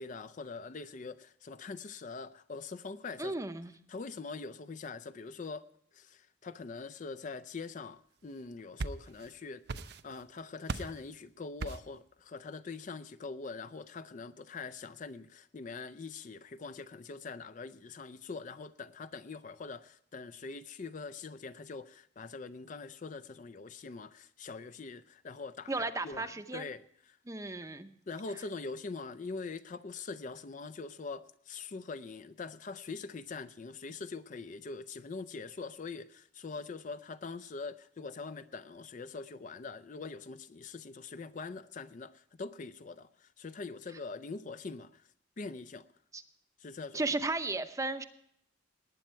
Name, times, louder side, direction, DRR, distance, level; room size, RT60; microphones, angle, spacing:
voice 1, 0.0-3.4 3.9-5.7 5.9-27.2 28.1-45.1 45.4-45.9 46.6-47.1, left 4 dB, 40° left, 0.4 m, -43 dB
voice 2, 3.2-3.7 25.7-26.6 27.3-27.9 46.1-46.2 46.9-48.0, right 2 dB, 15° right, 0.7 m, -34 dB
sound 1, 8.4-9.3 9.7-10.3 10.7-11.0 11.6-12.0, right 3 dB, 55° right, 0.5 m, -39 dB
19.0 x 9.1 x 4.4 m
head